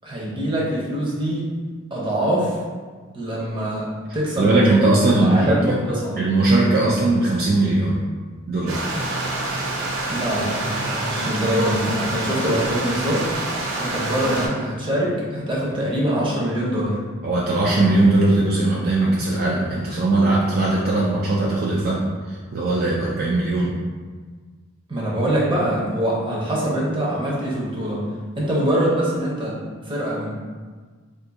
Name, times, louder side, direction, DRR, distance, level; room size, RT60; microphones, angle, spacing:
voice 1, 0.0-1.5 1.9-2.6 3.1-4.8 5.2-6.2 10.1-13.3 13.8-17.0 24.9-28.0 28.4-30.3, right 1 dB, 25° right, -5 dB, 0.7 m, -24 dB
voice 2, 4.4-5.8 6.2-8.0 8.5-8.8 17.2-23.8, right 2 dB, 50° right, -4 dB, 0.4 m, -19 dB
Stream, 8.7-14.5, right 2 dB, 85° right, 0.6 m, -27 dB
2.5 x 2.5 x 3.9 m, 1.5 s
head